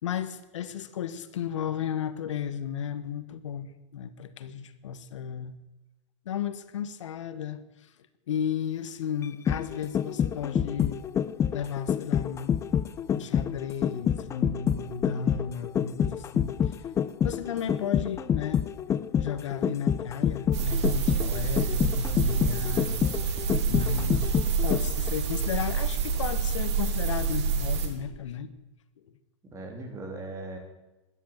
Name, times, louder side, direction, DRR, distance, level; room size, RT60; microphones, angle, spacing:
voice 1, 0.0-5.6 6.2-7.9 8.3-11.0 11.5-12.6 13.1-16.8 17.2-18.7 19.2-23.0 23.3-24.2 24.6-28.5, left 8 dB, 85° left, 13 dB, 1.2 m, -34 dB
sound 1, 9.2-25.1 25.4-25.5, left 8 dB, 20° left, 0.5 m, -27 dB
sound 2, 20.5-27.9, right 5 dB, 65° right, 2.9 m, -28 dB
voice 2, 23.9-24.2 29.4-30.6, right 2 dB, 20° right, 3 dB, 3.3 m, -39 dB
13.5 x 11.5 x 7.3 m, 1.0 s
hypercardioid pair, 135°, 15 cm